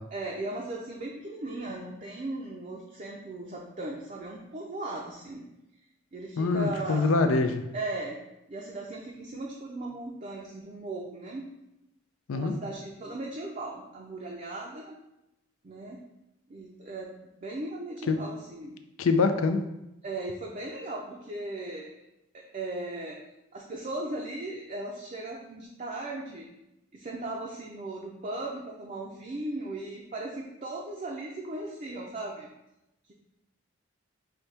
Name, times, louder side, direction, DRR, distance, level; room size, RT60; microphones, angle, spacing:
voice 1, 0.1-5.4 6.1-7.1 7.7-8.2 8.5-11.5 12.3-15.0 15.6-16.0 16.5-17.1 17.4-18.8 20.0-21.9 22.3-23.2 23.5-26.5 26.9-32.5, right 2 dB, 35° right, -2 dB, 0.5 m, -37 dB
voice 2, 6.4-7.6 12.3-12.6 18.1-18.2 19.0-19.7, left 3 dB, 90° left, 8 dB, 0.4 m, -24 dB
5.6 x 2.7 x 3.3 m, 0.90 s
head